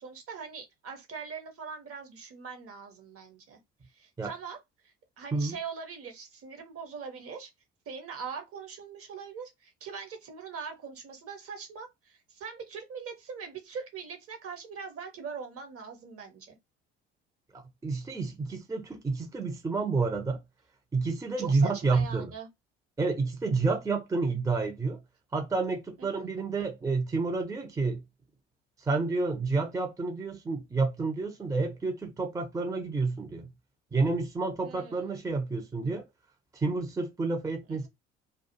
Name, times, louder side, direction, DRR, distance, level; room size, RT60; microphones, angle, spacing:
voice 1, 0.0-3.6 4.0-4.6 4.8-7.5 7.9-16.6 21.4-22.5 26.0-26.3 34.6-35.2 37.7-37.9, right 6 dB, 45° right, 1.0 m, -42 dB
voice 2, 17.5-20.4 20.9-22.3 23.0-25.0 25.3-28.0 28.8-33.5 33.9-36.0 36.5-37.9, right 3 dB, 10° right, 0.6 m, -29 dB
2.4 x 2.3 x 2.8 m
figure-of-eight pair, 55°, 33 cm